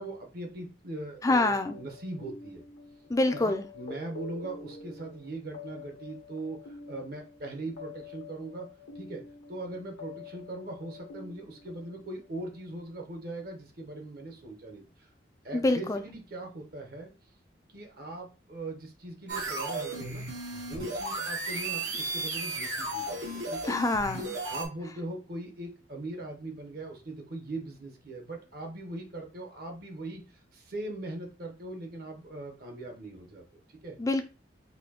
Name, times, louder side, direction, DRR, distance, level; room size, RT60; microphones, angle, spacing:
voice 1, 0.0-2.6 3.3-8.7 8.9-9.2 9.5-15.1 15.4-17.1 17.7-20.2 20.5-23.8 24.5-34.0, right 2 dB, 55° right, 3 dB, 0.9 m, -40 dB
voice 2, 1.2-1.8 3.1-3.6 15.5-16.0 23.7-24.4 34.0-34.2, left 2 dB, 15° left, 7 dB, 0.4 m, -26 dB
sound 1, 1.5-12.8, left 4 dB, 90° left, 1.1 m, -47 dB
sound 2, 19.3-24.7, right 2 dB, 80° right, 1.1 m, -34 dB
4.2 x 2.7 x 2.8 m, 0.33 s
head